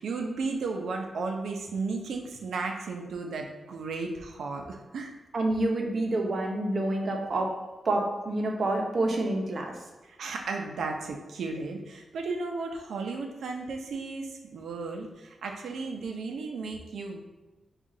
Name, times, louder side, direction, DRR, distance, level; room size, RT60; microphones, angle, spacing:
voice 1, 0.0-5.1 10.0-17.2, right 3 dB, 85° right, 3 dB, 0.6 m, -34 dB
voice 2, 5.3-7.5 7.8-9.7, right 2 dB, 45° right, 1 dB, 0.7 m, -28 dB
5.5 x 2.4 x 3.7 m, 1.1 s
wide cardioid pair, 115°, 0 cm